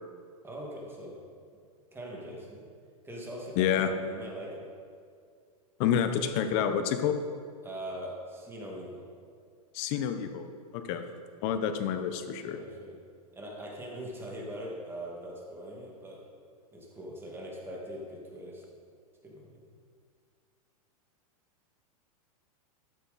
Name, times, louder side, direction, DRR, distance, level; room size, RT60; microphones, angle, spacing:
voice 1, 0.4-1.2 1.9-2.7 3.0-4.7 7.6-9.1 10.9-11.0 12.4-13.0 13.3-16.2 16.7-18.6 19.2-19.6, equal, 10° right, -2 dB, 2.2 m, -42 dB
voice 2, 3.6-3.9 5.8-7.2 9.7-10.5 10.7-11.0 11.4-12.6, left 8 dB, 50° left, 8 dB, 1.0 m, -28 dB
13.0 x 7.3 x 4.2 m, 2.2 s
hypercardioid pair, 125°, 19 cm